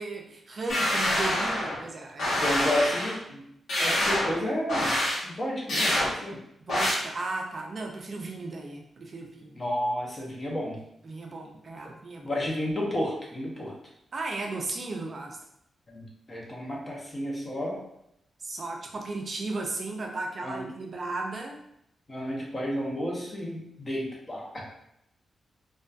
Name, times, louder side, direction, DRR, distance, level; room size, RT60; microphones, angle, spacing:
voice 1, 0.0-2.5 6.7-9.6 11.0-12.4 14.1-15.4 18.4-21.6, right 3 dB, 40° right, 1 dB, 0.3 m, -35 dB
sound 1, 0.7-1.8 2.2-3.2 3.7-4.3 4.7-5.2 5.7-6.1 6.7-6.9, left 1 dB, 75° left, 0.9 m, -26 dB
voice 2, 2.4-3.4 3.8-4.9 5.2-6.4 9.6-10.8 12.2-13.7 15.9-17.8 20.4-20.7 22.1-24.7, left 1 dB, 25° left, -3 dB, 0.6 m, -31 dB
2.5 x 2.2 x 2.2 m, 0.77 s
wide cardioid pair, 145°, 0 cm